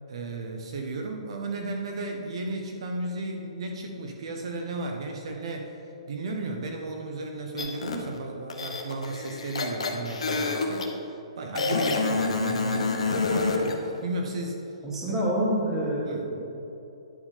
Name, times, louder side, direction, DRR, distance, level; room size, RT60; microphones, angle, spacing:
voice 1, 0.1-5.7 6.1-10.9 11.4-14.7 15.1-15.2 16.0-16.3, right 2 dB, 55° right, 2 dB, 0.8 m, -34 dB
sound 1, 7.6-8.0 8.5-10.9 11.6-13.8, left 3 dB, 85° left, 1.0 m, -27 dB
voice 2, 14.8-16.4, right 1 dB, 10° right, -5 dB, 1.4 m, -27 dB
10.0 x 3.6 x 6.6 m, 3.0 s
hypercardioid pair, 165°, 3 cm